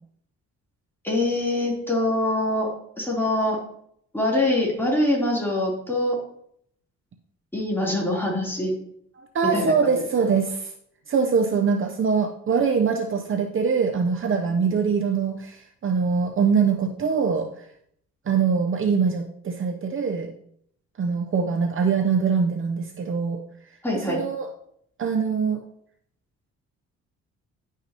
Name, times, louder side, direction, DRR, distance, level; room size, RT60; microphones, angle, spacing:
voice 1, 1.0-2.7 3.0-3.6 4.1-6.2 7.5-8.7 9.4-10.0 23.8-24.2, left 1 dB, 5° left, -4 dB, 3.5 m, -24 dB
voice 2, 9.2-10.7 11.1-17.5 18.3-20.3 21.0-23.4 23.9-24.5 25.0-25.6, right 5 dB, 45° right, 4 dB, 0.8 m, -23 dB
10.5 x 5.8 x 3.0 m, 0.69 s
cardioid pair, 90°, 30 cm